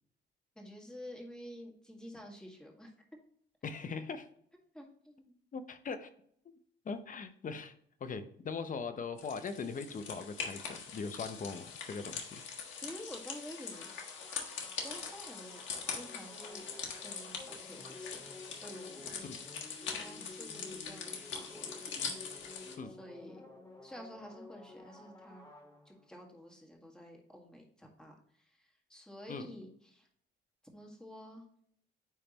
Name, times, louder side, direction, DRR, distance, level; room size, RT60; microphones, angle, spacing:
voice 1, 0.6-2.9 4.7-5.3 12.8-13.9 14.8-15.6 15.9-16.8 17.0-19.2 19.8-21.8 22.8-23.4 23.8-25.5 25.9-30.1 30.7-31.4, equal, 5° left, 0 dB, 1.8 m, -50 dB
voice 2, 3.6-4.3 5.5-6.1 6.8-7.7 8.0-12.4 19.2-19.4 22.8-22.9 29.3-29.5, left 5 dB, 40° left, 10 dB, 0.8 m, -40 dB
sound 1, 9.2-22.8, left 6 dB, 70° left, 1.5 m, -43 dB
sound 2, 13.7-26.3, left 2 dB, 20° left, 2.4 m, -52 dB
9.2 x 3.4 x 3.0 m, 0.65 s
cardioid pair, 90°, 20 cm